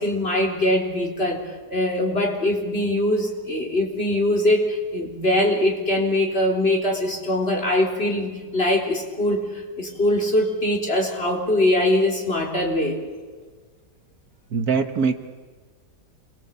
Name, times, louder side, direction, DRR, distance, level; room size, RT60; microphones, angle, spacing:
voice 1, 0.0-1.4 1.7-13.0, left 1 dB, 35° left, 1 dB, 4.3 m, -22 dB
voice 2, 14.5-15.2, right 5 dB, 65° right, 8 dB, 1.8 m, -22 dB
27.0 x 22.0 x 8.3 m, 1.4 s
omnidirectional pair, 1.8 m